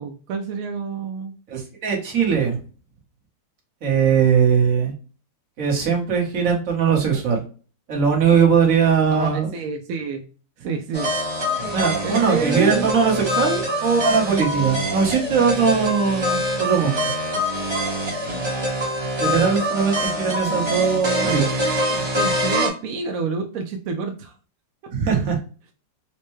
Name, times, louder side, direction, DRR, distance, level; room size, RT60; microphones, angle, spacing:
voice 1, 0.0-1.3 9.1-10.2 10.6-11.1 12.0-12.9 21.9-24.3 24.8-24.9, right 4 dB, 70° right, 4 dB, 0.8 m, -28 dB
voice 2, 1.5-2.6 3.8-4.9 5.6-7.4 7.9-9.5 11.7-16.9 19.2-21.4 24.9-25.4, right 6 dB, 50° right, 0 dB, 1.4 m, -20 dB
sound 1, 10.9-22.7, equal, 20° right, 0.9 m, -25 dB
4.3 x 2.2 x 3.0 m, 0.37 s
omnidirectional pair, 1.9 m